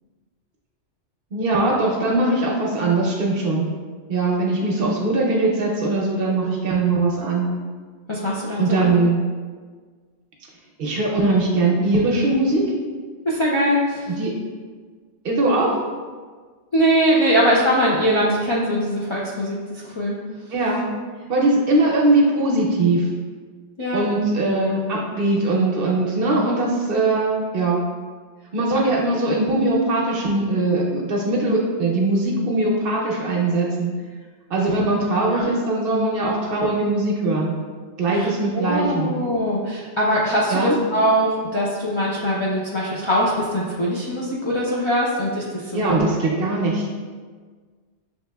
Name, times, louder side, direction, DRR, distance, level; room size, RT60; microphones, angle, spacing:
voice 1, 1.3-3.7 4.1-7.5 8.6-9.2 10.8-12.7 14.1-14.3 15.2-15.8 20.5-20.9 21.3-23.1 23.9-27.8 28.5-33.9 34.5-37.6 38.0-39.1 40.5-40.8 45.7-46.9, right 2 dB, 60° right, -2 dB, 0.8 m, -21 dB
voice 2, 8.1-8.9 13.2-14.1 16.7-20.2 23.8-24.1 28.8-28.9 35.3-35.5 38.1-38.3 38.5-46.7, equal, 45° left, -6 dB, 0.4 m, -22 dB
6.3 x 2.9 x 2.2 m, 1.5 s
omnidirectional pair, 1.2 m